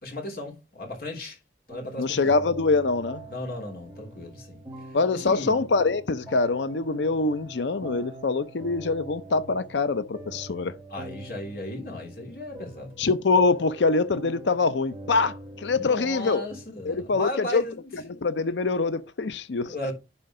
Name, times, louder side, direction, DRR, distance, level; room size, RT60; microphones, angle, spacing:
voice 1, 0.0-1.4 1.7-2.3 3.3-4.6 4.9-5.6 10.9-13.1 15.7-17.8 19.7-19.9, left 1 dB, 55° left, 3.3 m, -35 dB
sound 1, 1.7-16.6, right 1 dB, 10° right, 2.8 m, -44 dB
voice 2, 2.0-3.2 4.9-10.7 13.0-16.4 16.8-17.6 17.9-19.7, left 3 dB, 85° left, 0.6 m, -24 dB
10.5 x 4.5 x 3.7 m
head